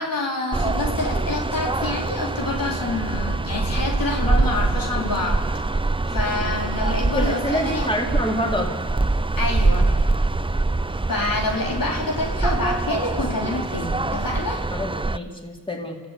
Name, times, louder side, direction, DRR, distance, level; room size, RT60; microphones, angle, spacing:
voice 1, 0.0-5.5 6.1-7.9 9.4-9.9 11.1-14.6, left 2 dB, 70° left, 0 dB, 3.6 m, -27 dB
sound 1, 0.5-15.2, right 2 dB, 15° right, 0.6 m, -24 dB
voice 2, 7.1-8.7 14.7-16.0, equal, 15° left, 1 dB, 3.9 m, -26 dB
28.5 x 14.5 x 8.6 m, 1.5 s
cardioid pair, 50°, 35 cm